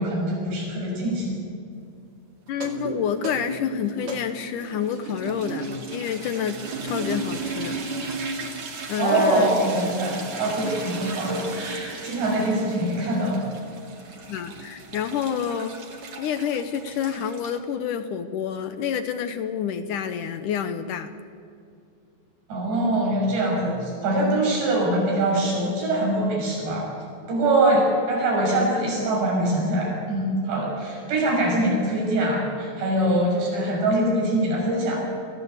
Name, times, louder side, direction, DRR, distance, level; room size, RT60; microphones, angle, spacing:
voice 1, 0.0-1.4 9.0-13.4 22.5-26.9 27.3-35.0, right 1 dB, 80° right, -2 dB, 8.7 m, -23 dB
voice 2, 2.5-7.7 8.9-9.5 12.5-12.6 14.3-15.8 16.2-21.1 27.7-27.8, left 8 dB, 70° left, 9 dB, 2.0 m, -28 dB
sound 1, 2.5-17.6, right 3 dB, 40° right, 2.5 m, -35 dB
28.0 x 16.5 x 8.2 m, 2.5 s
omnidirectional pair, 4.9 m